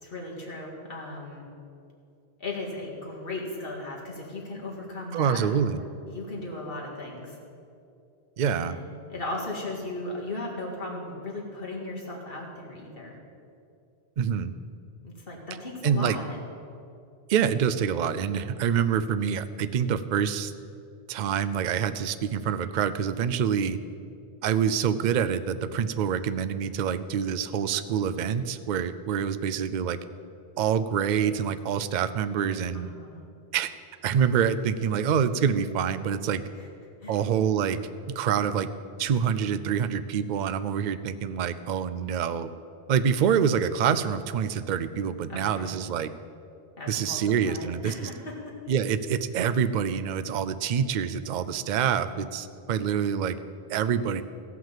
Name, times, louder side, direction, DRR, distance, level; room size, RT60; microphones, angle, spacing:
voice 1, 0.0-1.5 2.4-5.5 6.1-7.4 8.5-13.2 15.0-16.4 32.7-33.2 36.6-36.7 37.0-37.2 45.3-45.8 46.8-48.6, left 2 dB, 55° left, -2 dB, 2.3 m, -37 dB
voice 2, 5.1-5.8 8.4-8.8 14.2-14.5 15.8-16.2 17.3-20.5 21.1-23.8 24.4-30.0 30.6-32.9 33.5-33.7 34.0-36.4 37.1-37.8 38.1-38.7 39.0-42.5 42.9-46.1 46.9-48.1 48.7-53.4 53.7-54.2, right 7 dB, 55° right, 13 dB, 0.5 m, -26 dB
15.5 x 5.9 x 7.4 m, 2.6 s
omnidirectional pair, 1.1 m